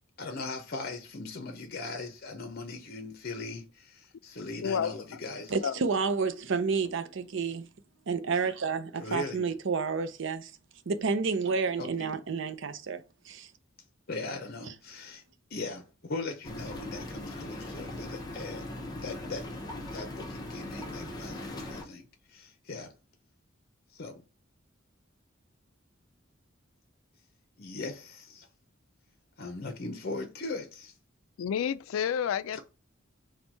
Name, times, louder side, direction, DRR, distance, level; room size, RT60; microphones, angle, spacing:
voice 1, 0.2-5.5 8.9-9.5 11.8-12.1 14.1-15.2 15.5-18.7 18.9-19.5 19.9-22.9 23.9-24.2 27.6-28.5 29.4-30.9 32.5-32.6, left 3 dB, 50° left, 0.7 m, -39 dB
voice 2, 5.5-7.6 8.1-10.5 10.9-13.5, right 5 dB, 65° right, 0.5 m, -30 dB
sound 1, 16.4-21.8, left 1 dB, 20° left, 0.9 m, -39 dB
voice 3, 31.4-32.6, left 8 dB, 85° left, 0.3 m, -29 dB
4.3 x 2.2 x 4.5 m
head